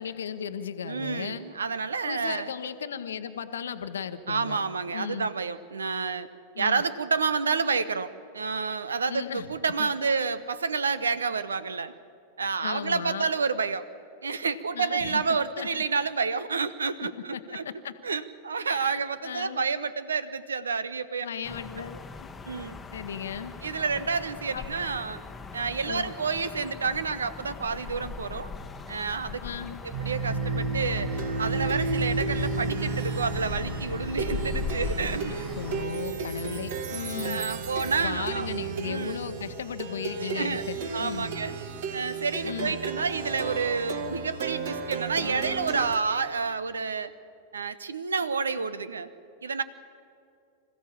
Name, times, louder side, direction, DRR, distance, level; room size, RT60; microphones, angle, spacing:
voice 1, 0.0-1.4 2.0-4.6 4.9-5.3 6.5-6.8 9.1-9.5 9.8-9.9 12.6-13.3 14.7-15.2 15.6-15.8 17.0-17.9 18.7-19.7 21.2-22.3 22.9-23.5 24.5-24.7 25.9-26.1 29.4-29.8 35.6-37.4 38.0-41.3 42.4-42.7, left 7 dB, 65° left, 10 dB, 1.0 m, -36 dB
voice 2, 0.8-2.5 4.3-6.3 6.6-11.9 12.4-13.9 14.2-17.6 18.0-21.3 22.5-22.8 23.6-25.2 25.5-28.5 28.9-29.4 29.8-31.1 31.4-35.5 37.2-38.5 38.8-39.2 40.2-40.6 40.9-41.5 41.9-47.1 47.5-49.1 49.4-49.6, right 5 dB, 70° right, 16 dB, 0.9 m, -29 dB
sound 1, 21.4-35.9, left 5 dB, 15° left, 1.1 m, -40 dB
Plucked string instrument, 29.9-46.0, right 3 dB, 55° right, 1.7 m, -32 dB
26.5 x 15.0 x 7.3 m, 2.5 s
figure-of-eight pair, 90°, 0 cm